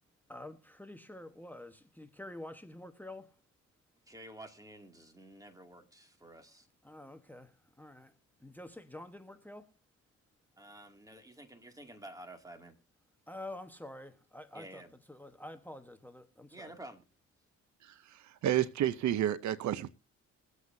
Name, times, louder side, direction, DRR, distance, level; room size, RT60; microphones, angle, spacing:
voice 1, 0.3-3.4 6.8-8.1 8.4-9.7 13.3-14.8 15.1-16.7, left 1 dB, 5° left, 1.1 m, -48 dB
voice 2, 4.1-6.7 10.6-12.8 14.5-14.9 16.5-17.0, right 1 dB, 10° right, 2.3 m, -51 dB
voice 3, 17.8-19.9, right 11 dB, 70° right, 0.7 m, -31 dB
22.5 x 8.2 x 2.7 m
cardioid pair, 90°, 30 cm